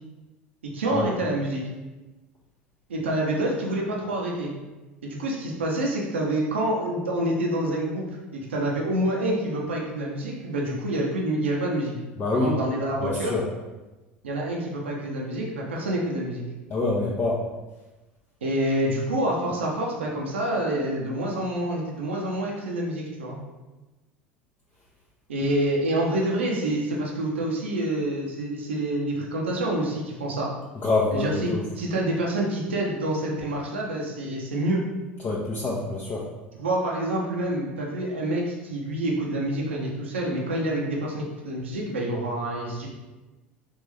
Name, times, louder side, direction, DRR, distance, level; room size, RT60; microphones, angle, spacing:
voice 1, 0.6-1.6 2.9-4.5 5.0-8.1 8.3-11.9 12.3-13.4 14.2-16.4 18.4-23.4 25.3-30.5 31.1-34.8 36.6-42.9, right 1 dB, 85° right, -2 dB, 0.7 m, -27 dB
voice 2, 12.2-12.5 13.0-13.4 16.7-17.4 30.8-31.6 35.2-36.3, left 3 dB, 35° left, -5 dB, 0.6 m, -26 dB
3.6 x 2.5 x 3.3 m, 1.1 s
hypercardioid pair, 75°, 6 cm